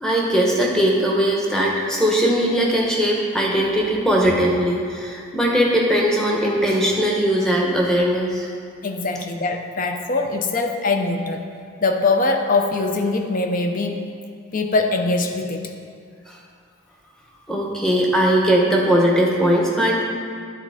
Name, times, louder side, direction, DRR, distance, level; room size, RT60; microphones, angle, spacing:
voice 1, 0.0-8.5 16.3-16.4 17.5-20.0, equal, 5° left, -3 dB, 0.9 m, -19 dB
voice 2, 8.8-11.4 11.8-14.1 14.5-15.7, left 3 dB, 40° left, 4 dB, 0.5 m, -22 dB
10.0 x 4.1 x 4.8 m, 2.3 s
head